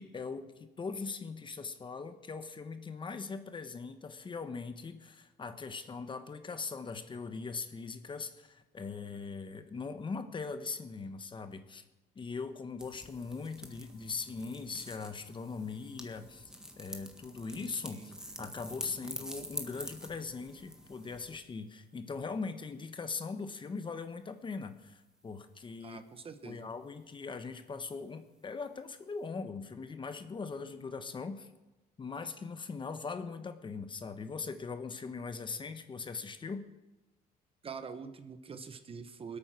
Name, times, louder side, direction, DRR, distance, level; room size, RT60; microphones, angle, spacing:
voice 1, 0.0-11.8 12.1-26.0 26.4-31.5 32.0-36.6, left 4 dB, 30° left, 9 dB, 1.1 m, -40 dB
sound 1, 12.8-21.4, equal, 5° right, 1.6 m, -47 dB
voice 2, 17.8-18.2 25.8-26.7 37.6-39.4, right 5 dB, 35° right, 11 dB, 1.0 m, -45 dB
20.0 x 8.8 x 6.2 m, 1.0 s
cardioid pair, 110°, 17 cm